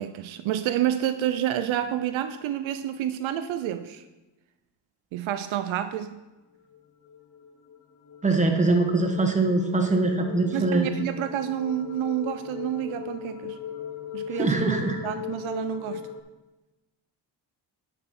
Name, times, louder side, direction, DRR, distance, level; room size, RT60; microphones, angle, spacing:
voice 1, 0.0-4.0 5.1-6.2 9.8-10.0 10.5-13.6 14.1-14.8 15.0-16.0, right 11 dB, 80° right, 10 dB, 0.6 m, -29 dB
sound 1, 6.6-16.2, left 8 dB, 40° left, 0.9 m, -39 dB
voice 2, 8.2-10.9 14.3-15.0, right 3 dB, 15° right, 3 dB, 1.4 m, -23 dB
9.1 x 4.4 x 5.9 m, 1.1 s
cardioid pair, 85°, 46 cm